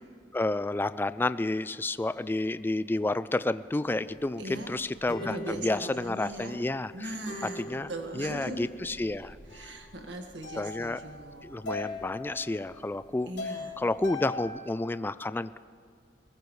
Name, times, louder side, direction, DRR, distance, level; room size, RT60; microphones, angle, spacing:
voice 1, 0.3-7.1 7.6-7.9 8.1-9.8 10.5-11.0 11.4-13.3 13.8-15.6, left 2 dB, 10° left, 14 dB, 0.3 m, -30 dB
sound 1, 4.0-14.4, left 2 dB, 70° left, 3.5 m, -42 dB
voice 2, 4.4-4.7 5.2-6.6 6.9-8.7 9.5-11.5 13.3-13.8, right 1 dB, 85° right, 3 dB, 1.7 m, -39 dB
22.0 x 20.0 x 3.2 m, 2.3 s
head